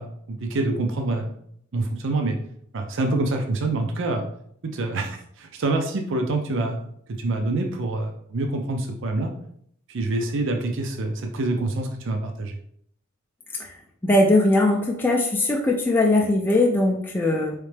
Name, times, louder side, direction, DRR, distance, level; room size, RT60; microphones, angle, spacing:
voice 1, 0.0-1.3 1.7-2.4 2.7-4.3 4.7-9.3 9.9-12.6, right 2 dB, 60° right, 4 dB, 0.5 m, -26 dB
voice 2, 14.0-17.5, left 2 dB, 10° left, -1 dB, 0.4 m, -20 dB
3.8 x 3.2 x 3.3 m, 0.67 s
head